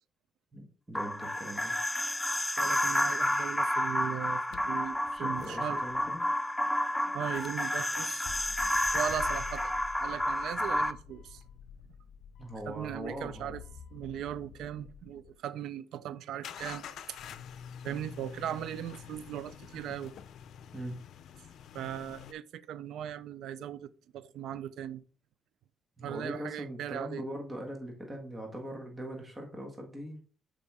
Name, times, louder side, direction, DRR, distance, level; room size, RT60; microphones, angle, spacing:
voice 1, 0.5-1.7 5.1-6.2 12.4-13.6 20.7-21.0 26.0-30.2, right 1 dB, 20° right, 1.6 m, -41 dB
sound 1, 0.9-10.9, left 1 dB, 10° left, 0.4 m, -30 dB
voice 2, 2.6-5.9 7.1-8.3 8.9-9.7 10.0-11.4 12.7-13.6 13.9-17.2 17.8-20.1 21.7-25.0 26.0-27.2, right 10 dB, 80° right, 0.4 m, -38 dB
sound 2, 4.5-6.2 7.2-15.4 16.4-22.3, left 8 dB, 70° left, 0.5 m, -48 dB
7.0 x 5.0 x 3.5 m
cardioid pair, 90°, 0 cm